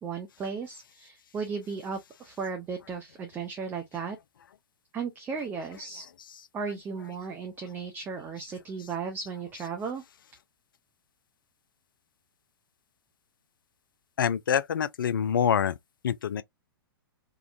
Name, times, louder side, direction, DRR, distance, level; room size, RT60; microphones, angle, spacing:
voice 1, 0.0-4.2 4.9-6.0 6.5-10.0, right 5 dB, 15° right, 0.6 m, -35 dB
voice 2, 14.2-15.7 16.0-16.4, left 8 dB, 60° left, 0.4 m, -26 dB
3.7 x 2.2 x 2.4 m
figure-of-eight pair, 110°, 12 cm